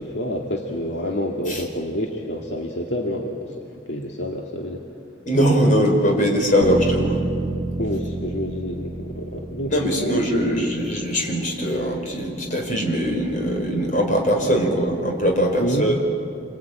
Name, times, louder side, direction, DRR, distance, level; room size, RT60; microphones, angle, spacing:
voice 1, 0.0-4.9 7.8-10.7 15.6-16.0, left 1 dB, 70° left, 0 dB, 1.9 m, -28 dB
voice 2, 5.3-7.1 9.7-15.9, equal, 40° left, 1 dB, 4.9 m, -21 dB
sound 1, 6.6-10.6, right 2 dB, 30° right, 1.5 m, -29 dB
27.0 x 22.0 x 9.2 m, 2.5 s
head